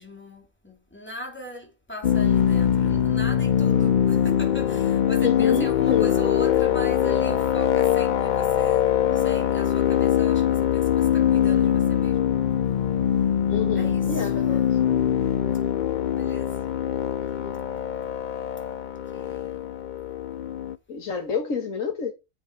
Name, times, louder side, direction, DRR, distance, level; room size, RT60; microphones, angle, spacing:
voice 1, 0.0-12.4 13.7-14.4 16.1-16.6 19.1-19.8, equal, 10° left, 3.1 m, -39 dB
sound 1, 2.0-20.8, left 9 dB, 55° left, 0.5 m, -22 dB
voice 2, 5.2-6.1 13.5-14.8 17.4-17.6 20.9-22.1, left 6 dB, 80° left, 1.9 m, -28 dB
8.1 x 7.4 x 4.7 m
omnidirectional pair, 1.4 m